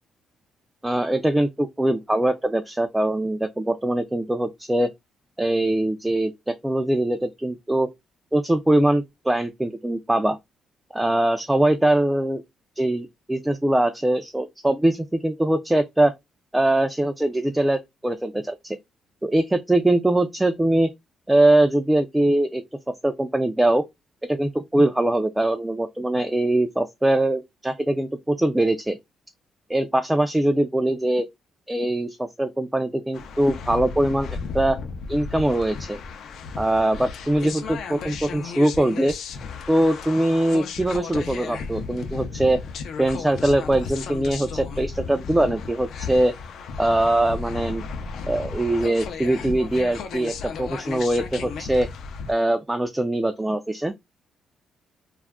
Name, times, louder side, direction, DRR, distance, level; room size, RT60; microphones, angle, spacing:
voice 1, 0.8-4.9 5.4-7.9 8.3-10.4 10.9-12.4 12.8-16.1 16.5-18.8 19.2-20.9 21.3-22.6 23.0-23.8 24.3-29.0 29.7-31.3 31.7-34.8 35.1-36.0 36.6-39.1 39.7-42.6 43.0-46.3 46.8-47.8 48.3-51.9 52.3-53.9, right 1 dB, 10° right, 0.4 m, -22 dB
sound 1, 33.1-52.3, left 5 dB, 70° left, 0.5 m, -34 dB
2.4 x 2.1 x 3.4 m
cardioid pair, 90°, 0 cm